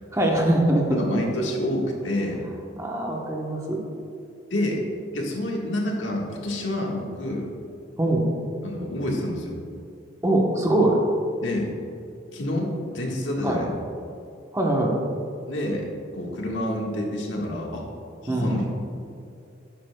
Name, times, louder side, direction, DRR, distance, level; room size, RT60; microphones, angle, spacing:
voice 1, 0.1-1.0 2.8-3.8 8.0-8.3 10.2-11.0 13.4-13.6 14.5-14.9 18.3-18.6, right 1 dB, 15° right, -1 dB, 1.0 m, -22 dB
voice 2, 0.9-2.4 4.5-4.8 5.1-7.5 8.6-9.6 11.4-11.7 12.3-13.7 15.5-15.8 16.1-17.8 18.2-18.6, left 1 dB, 85° left, -1 dB, 1.5 m, -28 dB
11.5 x 9.0 x 2.3 m, 2.5 s
head